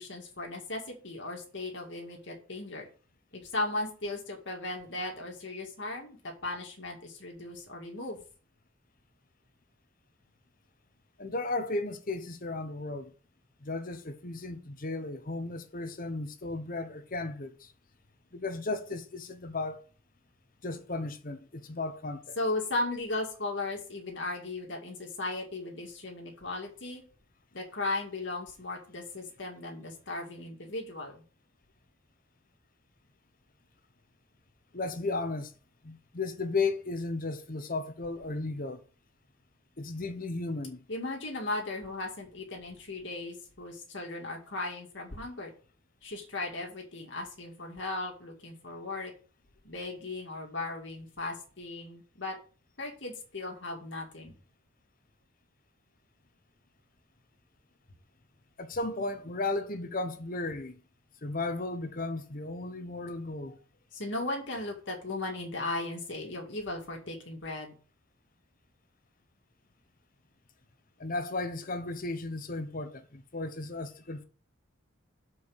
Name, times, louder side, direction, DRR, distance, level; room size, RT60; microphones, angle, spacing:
voice 1, 0.0-2.9 3.3-8.2 22.4-27.0 27.5-31.2 40.9-45.5 46.0-49.1 49.6-52.4 52.8-54.3 63.9-67.7, left 2 dB, 60° left, 2.2 m, -36 dB
voice 2, 11.2-13.1 13.6-17.7 18.3-19.8 20.6-22.4 34.7-35.5 35.8-38.8 39.8-40.8 58.6-60.8 61.2-63.6 71.0-74.2, left 3 dB, 40° left, 0.9 m, -35 dB
7.2 x 4.9 x 6.9 m
head